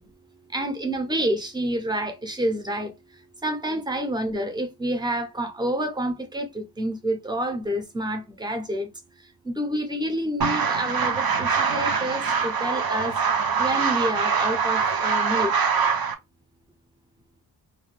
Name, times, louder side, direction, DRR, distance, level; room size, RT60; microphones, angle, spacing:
voice 1, 0.5-2.9 3.4-8.9 9.5-13.1 13.6-15.5, right 1 dB, 10° right, 0.5 m, -28 dB
sound 1, 10.4-16.2, right 6 dB, 55° right, 0.6 m, -24 dB
2.5 x 2.2 x 3.1 m
wide cardioid pair, 150°, 44 cm